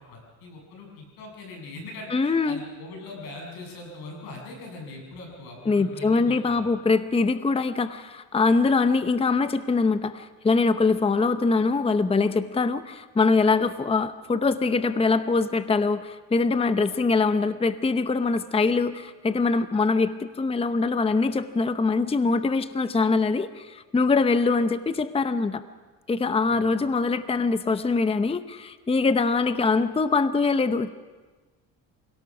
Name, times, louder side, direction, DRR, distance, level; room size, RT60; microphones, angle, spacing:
voice 1, 0.0-6.7 26.4-26.7, left 2 dB, 90° left, 1 dB, 7.4 m, -41 dB
voice 2, 2.1-2.6 5.7-25.6 26.1-30.9, left 4 dB, 15° left, 11 dB, 0.8 m, -23 dB
27.5 x 17.5 x 6.1 m, 1.3 s
cardioid pair, 95°, 37 cm